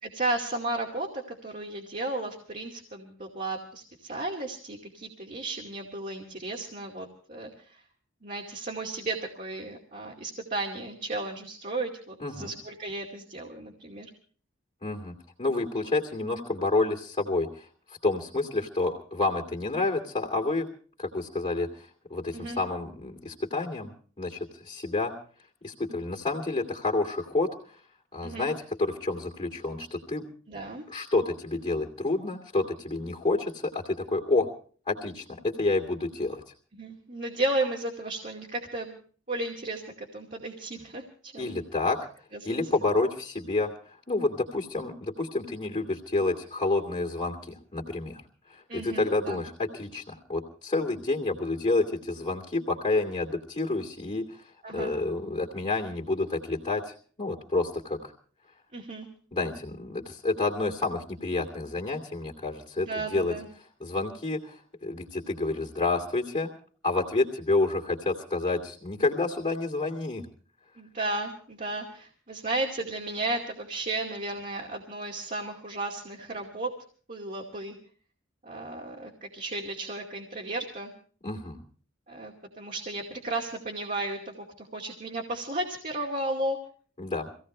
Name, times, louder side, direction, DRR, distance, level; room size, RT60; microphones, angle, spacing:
voice 1, 0.0-7.8 8.2-14.1 22.3-22.6 28.2-28.5 30.5-30.8 36.7-38.9 39.3-41.6 42.3-42.6 48.7-49.4 54.6-54.9 58.7-59.1 62.8-63.5 70.8-76.7 77.1-77.7 78.4-80.9 82.1-86.6, right 2 dB, 45° right, -1 dB, 2.4 m, -34 dB
voice 2, 12.2-12.5 14.8-20.7 21.0-23.9 24.2-24.4 24.6-25.1 25.6-27.5 28.1-30.2 30.9-34.5 34.9-36.4 41.4-42.1 42.4-43.7 44.1-48.2 48.5-54.5 54.7-58.1 59.3-63.3 63.8-66.5 66.8-70.2 81.2-81.6 87.0-87.3, left 3 dB, 35° left, -3 dB, 2.6 m, -29 dB
25.0 x 17.0 x 3.3 m, 0.43 s
head